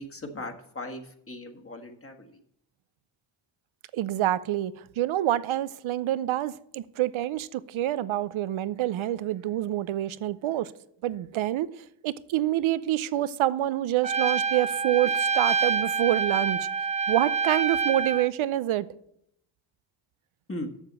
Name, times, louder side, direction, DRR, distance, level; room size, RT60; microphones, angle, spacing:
voice 1, 0.0-2.4 20.5-20.7, left 1 dB, 25° left, 1.6 m, -38 dB
voice 2, 3.9-10.7 11.0-11.7 12.0-16.7 17.1-18.9, right 13 dB, 70° right, 0.7 m, -27 dB
Trumpet, 14.0-18.3, right 5 dB, 15° right, 0.3 m, -27 dB
7.4 x 6.8 x 7.4 m
cardioid pair, 65°, 49 cm